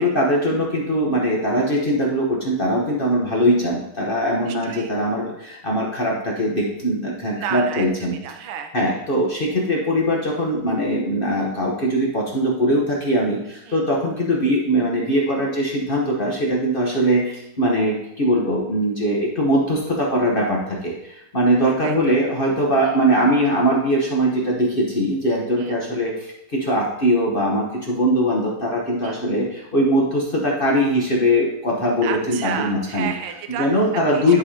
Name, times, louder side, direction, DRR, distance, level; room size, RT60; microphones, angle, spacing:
voice 1, 0.0-8.1 8.7-33.1 33.6-34.4, equal, 40° left, -3 dB, 0.8 m, -21 dB
voice 2, 4.5-4.9 7.4-8.7 13.7-13.8 16.9-17.0 21.8-22.2 22.8-23.0 25.6-25.7 29.0-29.2 32.0-33.7 33.9-34.4, right 8 dB, 80° right, 6 dB, 1.5 m, -32 dB
11.0 x 4.8 x 2.8 m, 0.83 s
omnidirectional pair, 2.3 m